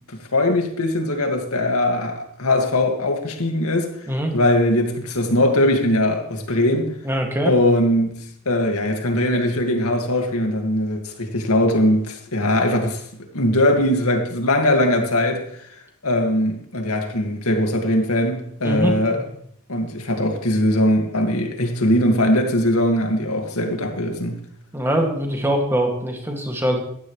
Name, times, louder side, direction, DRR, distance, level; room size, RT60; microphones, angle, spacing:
voice 1, 0.0-3.9 4.3-6.9 7.4-8.1 8.5-13.0 13.3-15.6 16.0-19.2 19.7-24.4, left 1 dB, 85° left, 2.1 m, -20 dB
voice 2, 7.0-7.5 18.6-19.2 24.7-26.8, right 1 dB, 10° right, 2.2 m, -23 dB
15.5 x 11.5 x 3.2 m
head